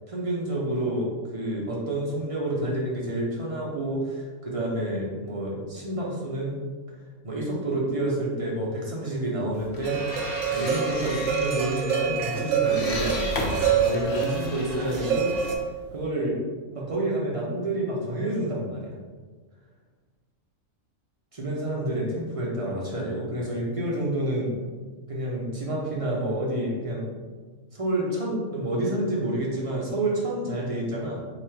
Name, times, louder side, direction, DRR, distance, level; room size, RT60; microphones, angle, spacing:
voice 1, 0.1-6.6 7.2-15.3 15.9-16.4 16.7-19.0 21.3-24.6 25.1-27.2 27.7-31.2, right 1 dB, 35° right, -4 dB, 0.6 m, -29 dB
sound 1, 9.5-16.0, left 2 dB, 60° left, 0.6 m, -35 dB
sound 2, 9.8-15.5, right 7 dB, 75° right, 1.0 m, -26 dB
3.1 x 2.4 x 4.3 m, 1.4 s
omnidirectional pair, 1.4 m